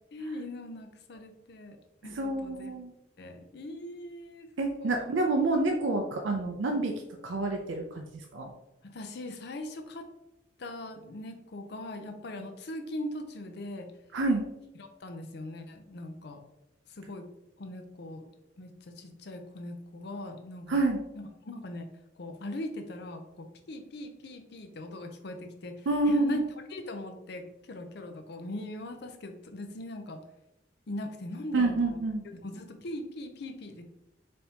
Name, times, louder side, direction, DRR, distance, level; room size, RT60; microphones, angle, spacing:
voice 1, 0.1-1.8 2.0-2.7 3.2-5.1 6.7-6.8 8.8-10.1 10.6-13.9 14.8-16.4 17.0-17.3 17.6-18.2 18.6-20.8 21.1-21.9 22.2-26.4 26.7-30.2 30.9-32.0 32.4-33.8, left 1 dB, 60° left, 6 dB, 0.5 m, -40 dB
voice 2, 2.0-2.9 4.6-6.9 7.2-8.0 8.3-8.5 14.1-14.4 20.7-21.0 25.9-26.4 31.5-32.2, right 2 dB, 80° right, 2 dB, 0.5 m, -28 dB
4.2 x 3.4 x 2.8 m, 0.89 s
head